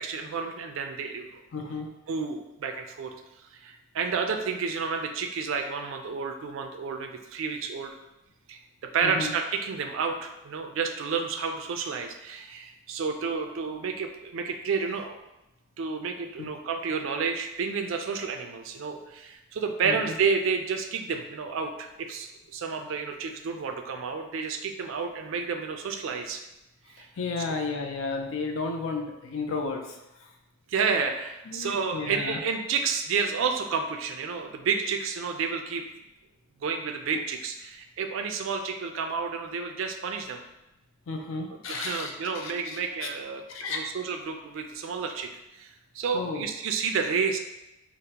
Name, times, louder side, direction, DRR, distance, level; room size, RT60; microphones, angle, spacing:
voice 1, 0.0-1.4 2.1-3.1 3.5-7.9 8.5-15.2 15.8-26.4 26.9-27.1 30.7-35.8 36.6-40.4 41.7-43.4 43.7-45.3 45.6-47.4, right 5 dB, 70° right, 5 dB, 0.4 m, -30 dB
voice 2, 1.5-1.9 9.0-9.3 16.4-16.5 19.8-20.0 27.0-30.3 31.5-32.4 41.1-43.1 43.5-43.9 46.1-46.4, left 4 dB, 70° left, 3 dB, 0.5 m, -33 dB
5.0 x 2.1 x 2.8 m, 0.93 s
head